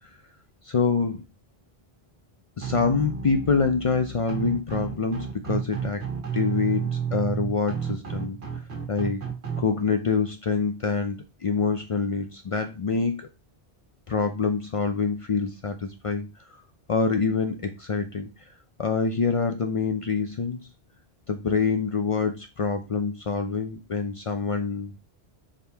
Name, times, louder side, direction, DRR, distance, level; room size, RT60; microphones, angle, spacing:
voice 1, 0.7-1.2 2.6-6.0 6.3-8.4 8.9-9.3 9.6-13.3 14.1-16.3 16.9-18.3 18.8-20.6 21.3-25.0, left 5 dB, 55° left, 6 dB, 0.4 m, -26 dB
sound 1, 2.6-9.6, right 7 dB, 90° right, 1.5 m, -31 dB
4.9 x 2.7 x 3.3 m, 0.27 s
omnidirectional pair, 1.1 m